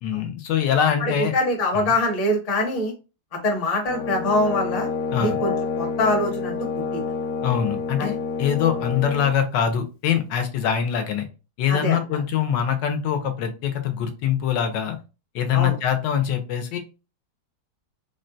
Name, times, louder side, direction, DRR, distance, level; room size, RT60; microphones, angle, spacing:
voice 1, 0.0-1.3 1.7-1.9 5.1-5.4 7.4-11.3 11.6-15.0 15.3-16.8, left 8 dB, 90° left, 6 dB, 1.3 m, -23 dB
voice 2, 1.0-2.9 3.4-4.9 5.2-6.5 6.9-7.1 8.0-8.1 11.7-12.0 15.5-15.7, left 1 dB, 35° left, 1 dB, 0.6 m, -24 dB
Brass instrument, 3.9-9.4, left 5 dB, 70° left, 0.8 m, -28 dB
3.7 x 2.1 x 2.6 m, 0.31 s
omnidirectional pair, 1.9 m